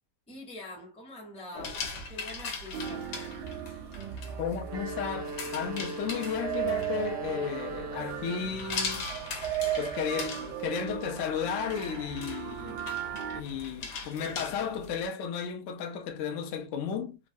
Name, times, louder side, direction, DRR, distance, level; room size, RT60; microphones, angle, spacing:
voice 1, 0.3-3.4, left 2 dB, 5° left, 0.5 m, -45 dB
sound 1, 1.5-15.1, left 4 dB, 90° left, 1.4 m, -41 dB
sound 2, 2.7-13.4, right 10 dB, 80° right, 1.2 m, -37 dB
voice 2, 4.4-9.1 9.8-12.9 13.3-17.2, left 7 dB, 65° left, 0.7 m, -34 dB
sound 3, 4.6-8.6, right 2 dB, 65° right, 0.8 m, -39 dB
3.1 x 2.2 x 2.5 m
omnidirectional pair, 1.8 m